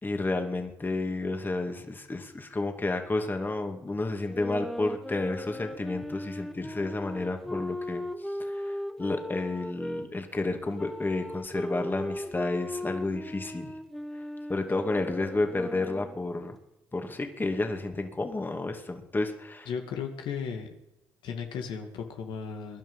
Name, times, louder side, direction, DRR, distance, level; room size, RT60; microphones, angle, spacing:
voice 1, 0.0-8.0 8.4-13.7 14.5-16.6 16.9-19.7, left 2 dB, 25° left, 5 dB, 2.5 m, -31 dB
sound 1, 4.2-10.1 10.8-16.2, left 1 dB, 5° left, 1.6 m, -37 dB
voice 2, 19.7-20.7 21.2-22.8, left 6 dB, 75° left, 4 dB, 2.2 m, -35 dB
22.0 x 11.0 x 5.6 m, 0.91 s
supercardioid pair, 65°, 8 cm